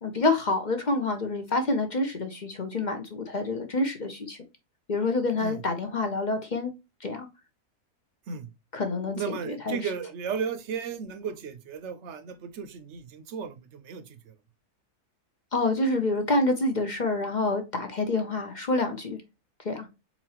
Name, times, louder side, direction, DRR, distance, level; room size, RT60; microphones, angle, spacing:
voice 1, 0.0-4.4 4.9-6.7 7.0-7.3 8.7-9.8 15.5-19.2 19.6-19.9, left 2 dB, 40° left, 0.7 m, -27 dB
voice 2, 9.2-14.3, right 6 dB, 55° right, 0.9 m, -35 dB
4.3 x 4.1 x 2.9 m
omnidirectional pair, 1.6 m